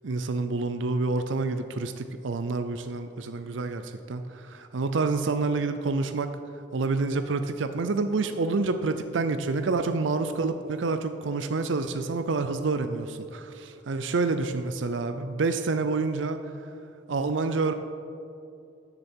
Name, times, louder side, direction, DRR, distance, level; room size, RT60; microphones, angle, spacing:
voice 1, 0.0-6.3 6.7-16.4 17.1-17.7, right 3 dB, 90° right, 9 dB, 0.5 m, -28 dB
13.5 x 6.9 x 4.5 m, 2.6 s
head